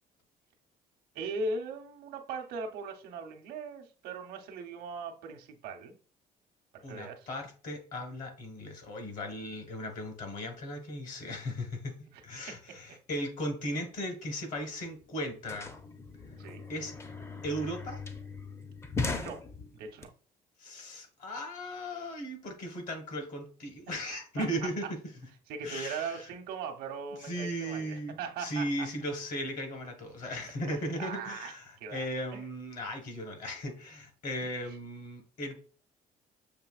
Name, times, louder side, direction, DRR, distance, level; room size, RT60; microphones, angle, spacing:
voice 1, 1.1-5.9 6.7-7.3 12.1-12.6 16.4-16.7 19.1-19.4 19.7-20.1 23.9-24.0 24.4-24.5 25.5-28.7 30.7-31.5 31.8-32.1 32.3-32.4, right 4 dB, 85° right, 0.8 m, -39 dB
voice 2, 6.8-15.7 16.7-16.9 17.4-18.0 20.6-25.0 25.6-26.3 27.2-35.6, equal, 55° left, 1.3 m, -37 dB
sound 1, 14.6-14.7 14.8-20.0, left 3 dB, 15° left, 0.4 m, -39 dB
6.8 x 2.9 x 2.4 m
cardioid pair, 135°, 16 cm